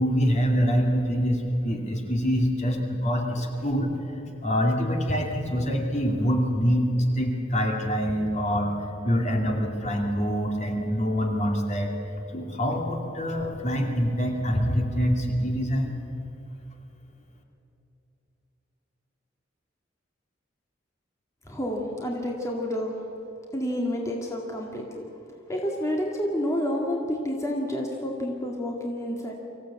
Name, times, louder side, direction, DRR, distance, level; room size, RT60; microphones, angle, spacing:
voice 1, 0.0-3.9 4.4-6.9 7.1-8.8 9.0-11.9 12.3-16.0, equal, 35° left, 2 dB, 2.4 m, -25 dB
voice 2, 21.5-23.0 23.5-25.1 25.5-29.3, equal, 15° left, -1 dB, 2.1 m, -29 dB
24.5 x 15.5 x 8.5 m, 2.9 s
head